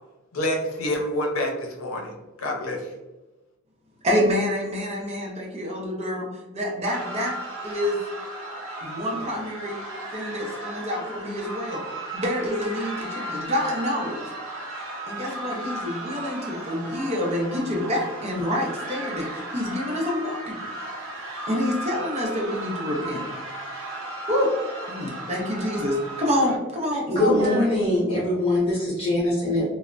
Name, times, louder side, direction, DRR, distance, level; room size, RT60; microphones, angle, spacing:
voice 1, 0.3-2.1 2.4-2.9, left 1 dB, 80° left, 2 dB, 0.6 m, -27 dB
voice 2, 4.0-7.4 7.6-8.0 8.8-9.8 10.1-11.8 12.1-14.1 15.1-20.6 21.5-23.2 24.3-24.6 24.9-27.6, left 1 dB, 30° right, -1 dB, 0.6 m, -27 dB
sound 1, 6.8-26.6, right 1 dB, 75° right, 0.7 m, -35 dB
voice 3, 27.1-29.6, left 1 dB, 30° left, -8 dB, 1.2 m, -22 dB
3.2 x 2.0 x 2.5 m, 1.1 s
head